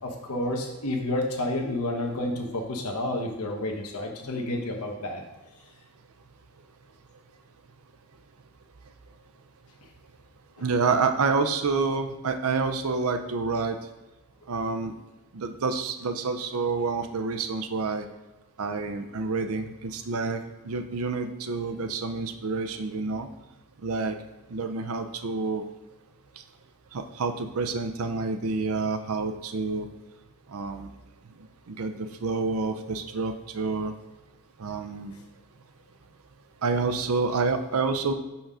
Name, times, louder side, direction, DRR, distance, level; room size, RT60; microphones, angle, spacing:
voice 1, 0.0-5.2, left 1 dB, 75° left, 1 dB, 1.1 m, -30 dB
voice 2, 10.6-13.8 14.5-14.9 15.3-18.1 18.6-23.3 23.8-24.1 24.5-25.6 26.9-29.9 30.5-30.9 31.7-33.9 34.6-35.1 36.6-38.1, right 4 dB, 65° right, 8 dB, 0.6 m, -28 dB
5.7 x 3.6 x 5.5 m, 1.1 s
head